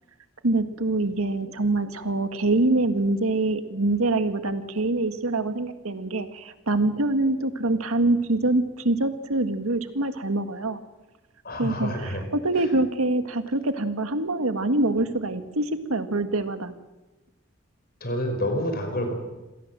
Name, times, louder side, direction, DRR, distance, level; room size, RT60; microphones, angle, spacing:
voice 1, 0.4-10.8 11.6-16.7, right 2 dB, 90° right, 9 dB, 1.8 m, -25 dB
voice 2, 11.4-12.2 18.0-19.1, equal, 45° left, 5 dB, 5.6 m, -28 dB
26.5 x 18.0 x 7.6 m, 1.1 s
head